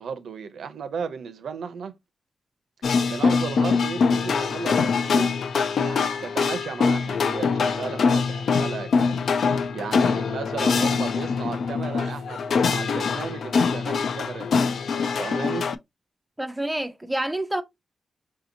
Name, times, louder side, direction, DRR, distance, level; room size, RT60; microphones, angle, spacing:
voice 1, 0.0-1.9 3.1-5.4 5.8-9.2 9.7-14.6 15.2-15.7, right 6 dB, 90° right, 0.6 m, -34 dB
sound 1, 2.8-15.8, left 5 dB, 65° left, 0.3 m, -23 dB
voice 2, 16.4-17.6, right 1 dB, 5° right, 0.4 m, -28 dB
4.8 x 2.8 x 2.7 m
wide cardioid pair, 170°, 0 cm